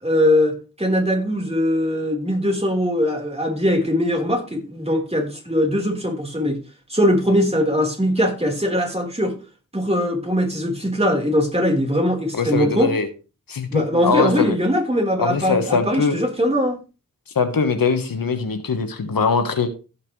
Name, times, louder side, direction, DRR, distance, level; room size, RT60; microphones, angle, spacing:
voice 1, 0.0-6.6 6.9-9.3 9.7-12.9 13.7-16.8, equal, 20° right, 1 dB, 4.0 m, -21 dB
voice 2, 12.3-13.1 13.5-14.5 15.2-16.2 17.3-19.7, left 5 dB, 90° left, 8 dB, 1.3 m, -22 dB
16.0 x 5.8 x 3.2 m, 0.32 s
cardioid pair, 40°, 33 cm